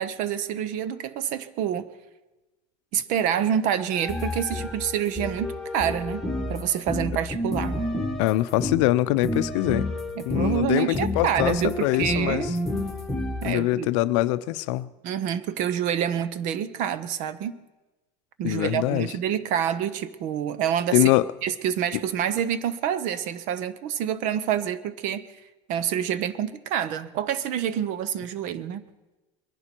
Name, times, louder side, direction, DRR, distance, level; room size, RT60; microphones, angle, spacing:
voice 1, 0.0-1.9 2.9-6.2 6.5-7.8 10.2-12.5 13.4-13.9 15.0-17.6 18.4-21.1 21.4-25.2 25.7-28.8, right 9 dB, 55° right, 0.9 m, -27 dB
sound 1, 3.9-8.9 9.2-10.6 10.9-13.5, left 1 dB, ahead, 1.7 m, -30 dB
voice 2, 8.2-9.9 10.3-12.6 13.4-14.9 18.4-19.1 20.9-21.3, left 16 dB, 85° left, 0.6 m, -23 dB
22.5 x 11.0 x 4.5 m
cardioid pair, 145°, 15 cm